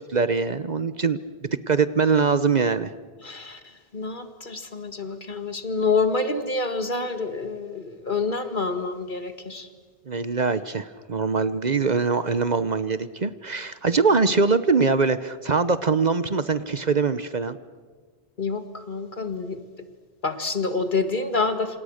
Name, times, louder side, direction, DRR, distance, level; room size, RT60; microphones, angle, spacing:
voice 1, 0.1-2.9 10.1-17.6, right 4 dB, 45° right, 14 dB, 1.0 m, -23 dB
voice 2, 3.2-9.7 18.4-19.6 20.2-21.8, left 3 dB, 50° left, 9 dB, 2.1 m, -27 dB
28.0 x 27.0 x 6.5 m, 1.5 s
omnidirectional pair, 1.0 m